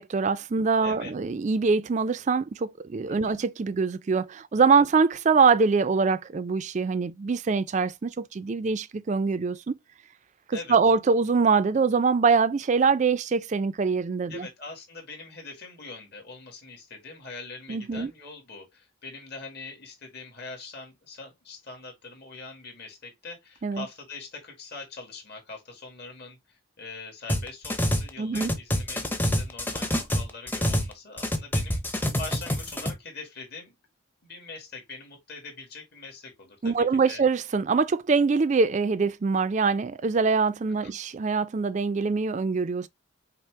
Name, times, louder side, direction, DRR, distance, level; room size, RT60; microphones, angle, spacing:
voice 1, 0.0-9.8 10.5-14.5 17.7-18.1 23.6-23.9 28.2-28.5 36.6-42.9, right 5 dB, 35° right, 0.3 m, -24 dB
voice 2, 0.8-1.1 3.1-3.4 4.8-4.9 10.5-10.8 14.3-33.7 34.2-37.2 40.8-41.0, left 3 dB, 50° left, 1.7 m, -43 dB
sound 1, 27.3-28.1 28.3-30.9 31.2-32.9, equal, 10° left, 0.6 m, -26 dB
5.6 x 2.0 x 4.5 m
head